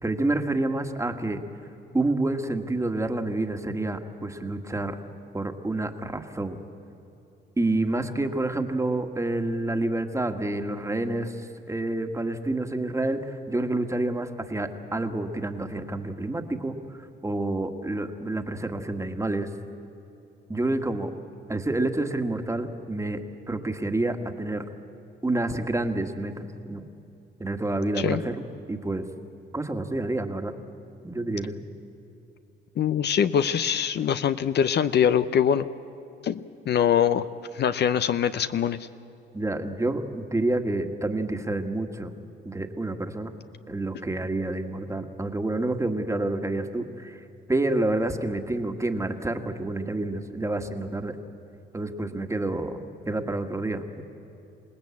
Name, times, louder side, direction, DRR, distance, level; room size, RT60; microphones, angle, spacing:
voice 1, 0.0-1.4 1.9-5.0 5.3-6.6 7.6-11.3 11.7-16.8 17.2-19.5 20.5-21.1 21.5-23.2 23.5-24.6 25.2-26.9 27.4-29.0 29.5-30.5 31.0-31.6 39.3-42.1 42.4-43.3 43.7-47.2 47.5-51.2 51.7-52.8 53.0-54.0, right 2 dB, 15° right, 6 dB, 1.7 m, -28 dB
voice 2, 32.8-35.7 36.2-37.3 37.5-38.8, left 8 dB, 60° left, 12 dB, 0.7 m, -23 dB
28.0 x 18.0 x 8.5 m, 2.7 s
cardioid pair, 90°, 20 cm